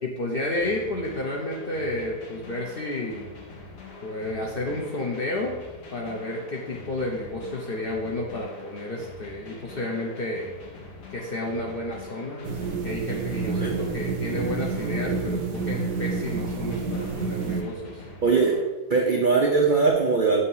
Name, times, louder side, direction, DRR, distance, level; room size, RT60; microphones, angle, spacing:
voice 1, 0.0-3.3 4.0-5.6 5.9-10.5 11.1-18.0, left 2 dB, 60° left, -2 dB, 0.6 m, -31 dB
sound 1, 0.6-18.6, left 2 dB, 80° left, 1.6 m, -43 dB
sound 2, 12.4-17.6, right 4 dB, 65° right, 0.8 m, -29 dB
voice 2, 13.4-13.7 18.2-18.5 18.9-20.4, right 4 dB, 85° right, 0 dB, 0.4 m, -21 dB
6.7 x 2.7 x 5.4 m, 1.2 s
omnidirectional pair, 1.7 m